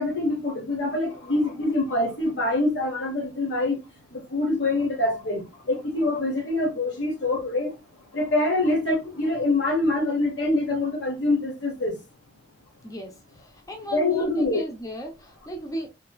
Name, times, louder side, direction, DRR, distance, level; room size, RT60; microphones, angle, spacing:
voice 1, 0.0-3.8 4.1-7.7 8.1-12.0 13.9-14.6, left 2 dB, 80° left, 1.1 m, -25 dB
voice 2, 12.8-15.9, right 1 dB, 20° left, 0.5 m, -35 dB
3.2 x 2.9 x 2.2 m
head